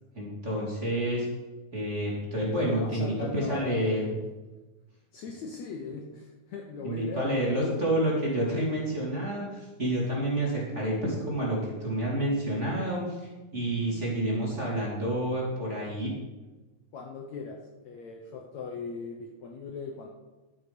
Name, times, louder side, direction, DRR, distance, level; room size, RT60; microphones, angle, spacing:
voice 1, 0.1-1.3 1.7-4.0 6.8-13.2 13.5-16.1, right 1 dB, 20° right, -4 dB, 2.7 m, -29 dB
voice 2, 2.6-3.9 5.1-7.8 16.9-17.6 17.8-20.1, left 4 dB, 65° left, 1 dB, 2.0 m, -38 dB
11.5 x 8.8 x 5.3 m, 1.2 s
omnidirectional pair, 4.0 m